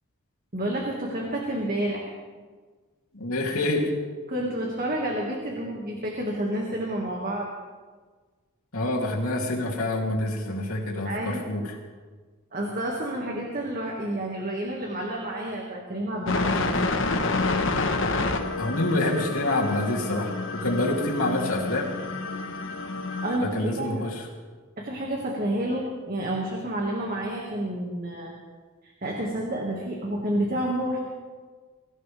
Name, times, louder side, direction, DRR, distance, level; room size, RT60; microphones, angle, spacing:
voice 1, 0.5-2.1 4.3-7.5 11.0-11.5 12.5-16.7 23.2-24.1 24.8-28.4 28.8-31.0, right 1 dB, 40° right, -1 dB, 2.0 m, -29 dB
voice 2, 3.1-3.9 8.7-11.6 18.6-21.9 23.4-24.2, left 1 dB, 80° left, -2 dB, 3.0 m, -27 dB
sound 1, 16.3-23.4, left 3 dB, 60° left, 1.2 m, -28 dB
23.5 x 15.5 x 3.5 m, 1.5 s
head